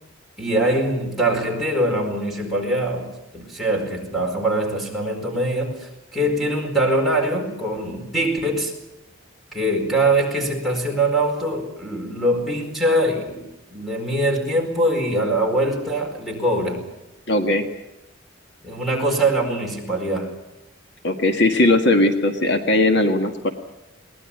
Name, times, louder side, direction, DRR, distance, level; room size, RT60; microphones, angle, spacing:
voice 1, 0.4-3.1 3.3-8.7 9.5-13.4 13.7-16.8 18.6-20.3, right 1 dB, ahead, -2 dB, 4.6 m, -23 dB
voice 2, 17.3-17.7 21.0-23.5, left 2 dB, 60° left, 6 dB, 1.8 m, -18 dB
22.0 x 19.0 x 8.6 m, 0.95 s
head